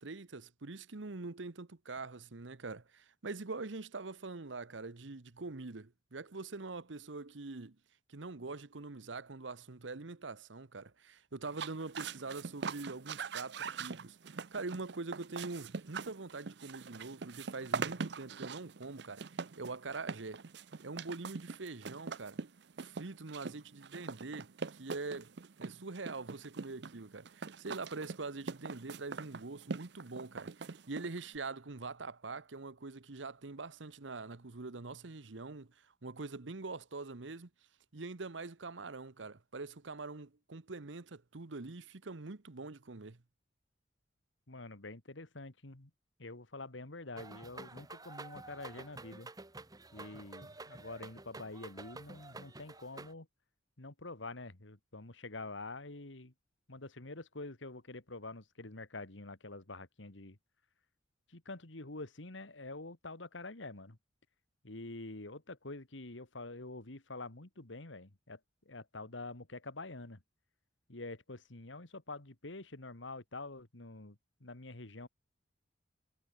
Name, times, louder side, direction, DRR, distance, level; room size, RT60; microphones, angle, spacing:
voice 1, 0.0-7.8 8.1-14.2 14.5-20.4 20.8-22.4 22.8-25.3 25.6-37.5 37.9-43.2, right 3 dB, 80° right, 1.1 m, -44 dB
sound 1, 11.5-31.4, right 5 dB, 60° right, 0.6 m, -43 dB
voice 2, 44.5-45.9 46.2-49.3 49.9-53.3 53.8-56.3 56.7-60.4 61.3-64.0 64.6-68.4 68.7-70.2 70.9-75.1, left 2 dB, 85° left, 2.2 m, -46 dB
sound 2, 47.2-53.1, right 3 dB, 20° right, 1.2 m, -50 dB
head